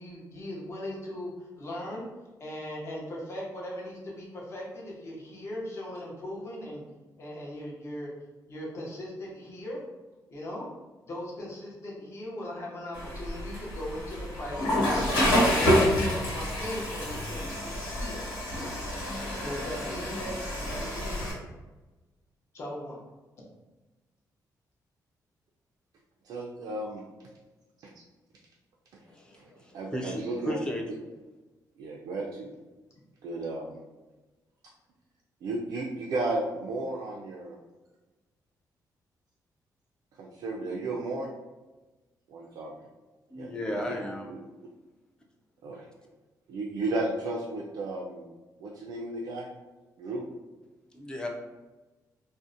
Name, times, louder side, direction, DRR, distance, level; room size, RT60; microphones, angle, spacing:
voice 1, 0.0-2.1 2.4-6.8 7.2-8.1 8.5-9.8 10.3-10.7 11.1-18.2 19.4-20.4 20.8-21.4 22.5-23.0, left 1 dB, 40° left, -4 dB, 0.6 m, -39 dB
Water / Toilet flush, 12.9-21.3, equal, 75° left, 1.3 m, -28 dB
voice 2, 26.2-27.0 29.3-29.4 29.7-30.6 31.8-32.5 33.2-33.8 35.4-37.6 40.2-41.3 42.3-42.7 43.4-43.8 44.3-44.4 45.6-45.8 46.5-48.3 48.6-49.5 50.0-50.2, right 2 dB, 70° right, -3 dB, 0.3 m, -33 dB
voice 3, 29.0-30.8 43.3-44.3 50.9-51.3, left 1 dB, 10° left, 0 dB, 0.3 m, -35 dB
2.6 x 2.0 x 2.5 m, 1.1 s
wide cardioid pair, 160°, 7 cm